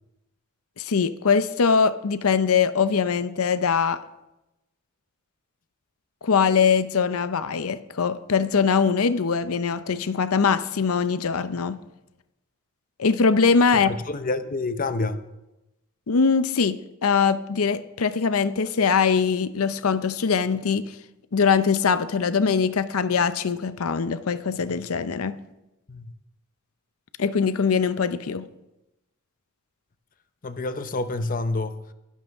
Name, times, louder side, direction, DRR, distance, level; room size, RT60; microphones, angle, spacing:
voice 1, 0.8-4.0 6.2-11.8 13.0-13.9 16.1-21.0 21.3-25.4 27.2-28.5, left 5 dB, 85° left, 0.6 m, -22 dB
voice 2, 14.1-15.2 25.9-26.1 30.4-31.8, left 2 dB, 40° left, 0.7 m, -28 dB
23.0 x 11.0 x 3.5 m
head